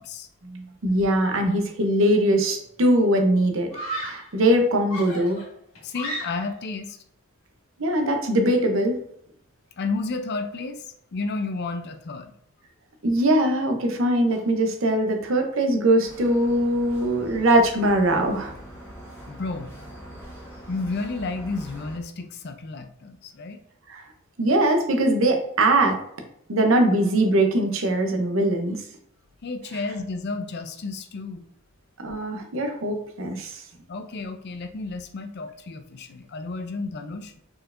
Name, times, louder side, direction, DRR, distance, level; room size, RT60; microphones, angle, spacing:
voice 1, 0.4-3.7 4.0-5.4 7.8-9.0 13.0-18.5 23.9-24.0 24.4-26.0 26.5-28.8 32.0-33.6, right 1 dB, 65° right, 4 dB, 0.7 m, -21 dB
Screaming, 2.5-2.6 3.7-4.4 4.9-6.6, right 1 dB, 75° left, 1.6 m, -34 dB
voice 2, 5.8-7.0 9.8-12.3 19.3-19.7 20.7-23.6 29.4-31.5 33.9-37.4, left 3 dB, 50° left, 8 dB, 0.4 m, -32 dB
sound 1, 16.0-22.0, equal, 10° left, 1.2 m, -43 dB
4.5 x 4.3 x 2.5 m, 0.71 s
head